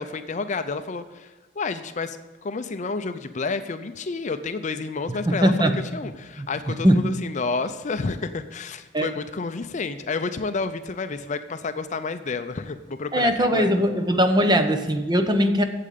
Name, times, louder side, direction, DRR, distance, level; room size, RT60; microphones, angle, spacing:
voice 1, 0.0-13.9, left 4 dB, 40° left, 10 dB, 0.5 m, -30 dB
voice 2, 5.1-5.8 6.4-6.5 6.8-7.0 8.9-9.1 13.1-15.6, equal, 20° right, 7 dB, 0.8 m, -20 dB
8.7 x 7.6 x 8.4 m, 1.2 s
head